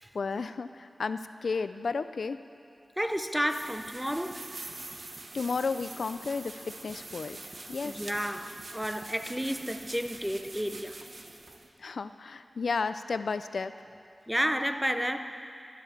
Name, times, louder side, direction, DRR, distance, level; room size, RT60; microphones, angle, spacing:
voice 1, 0.1-2.4 5.3-7.4 7.7-8.0 11.8-13.7, left 4 dB, 75° left, 0.5 m, -33 dB
voice 2, 3.0-4.5 7.8-11.1 14.3-15.4, equal, 5° right, 0.7 m, -31 dB
sound 1, 3.5-11.7, right 2 dB, 60° right, 1.1 m, -44 dB
14.0 x 10.5 x 7.4 m
wide cardioid pair, 65°, 0 cm